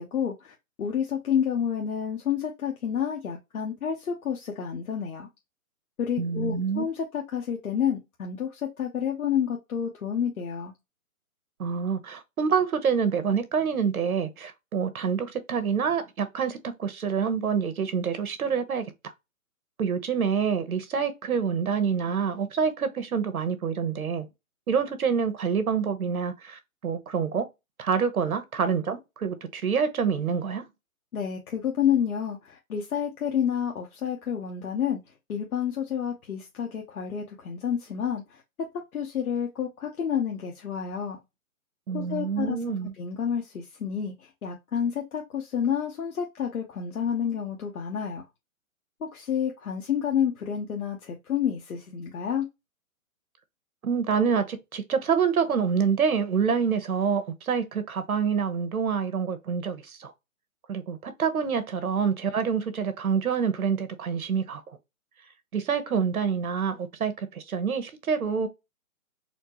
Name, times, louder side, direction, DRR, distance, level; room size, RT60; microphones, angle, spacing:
voice 1, 0.0-5.3 6.0-10.7 31.1-35.0 35.3-38.4 38.7-41.2 41.9-48.2 49.0-52.4, left 8 dB, 90° left, 1.0 m, -29 dB
voice 2, 6.2-6.8 11.6-18.8 19.8-24.3 24.7-27.5 27.8-30.6 41.9-42.9 53.8-60.1 60.7-64.8 65.5-68.5, right 6 dB, 80° right, 1.1 m, -27 dB
4.3 x 2.2 x 2.9 m
hypercardioid pair, 175°, 42 cm